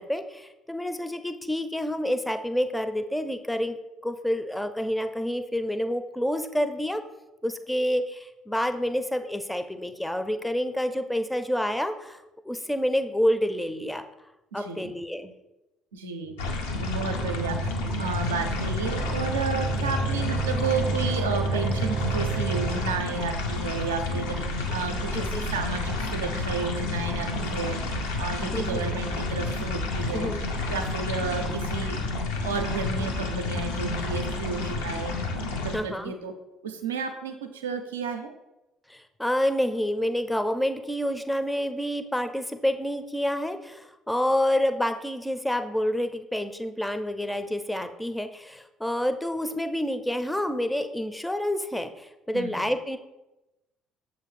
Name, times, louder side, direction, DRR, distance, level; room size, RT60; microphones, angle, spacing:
voice 1, 0.0-7.0 7.4-12.2 12.5-14.0 14.5-15.3 25.1-25.5 28.5-28.8 30.1-30.4 35.7-36.1 38.9-53.0, equal, 5° left, 9 dB, 0.4 m, -28 dB
voice 2, 14.5-14.9 15.9-16.3 16.8-17.7 18.0-24.4 24.7-27.8 28.2-30.3 30.7-32.0 32.4-35.1 35.6-36.3 36.6-38.3 52.3-52.5, right 5 dB, 85° right, 5 dB, 0.4 m, -32 dB
sound 1, 16.4-35.8, left 2 dB, 85° left, 0.6 m, -30 dB
sound 2, 16.4-23.2, right 4 dB, 40° right, 0.6 m, -31 dB
6.5 x 2.5 x 3.2 m, 0.99 s
hypercardioid pair, 55°, 0 cm